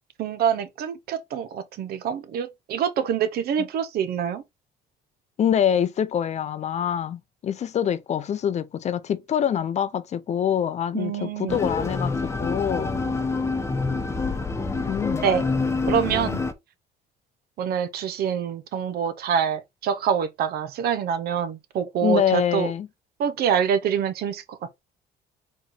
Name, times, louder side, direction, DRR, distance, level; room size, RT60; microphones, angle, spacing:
voice 1, 0.2-4.4 10.9-11.6 15.2-15.4 15.9-16.4 17.6-22.7 23.2-24.6, right 8 dB, 65° right, 0.8 m, -25 dB
voice 2, 5.4-12.9 14.9-15.3 22.0-22.9, left 9 dB, 40° left, 0.5 m, -25 dB
sound 1, 11.5-16.5, left 3 dB, 15° left, 0.8 m, -27 dB
4.3 x 3.0 x 4.1 m
cardioid pair, 110°, 17 cm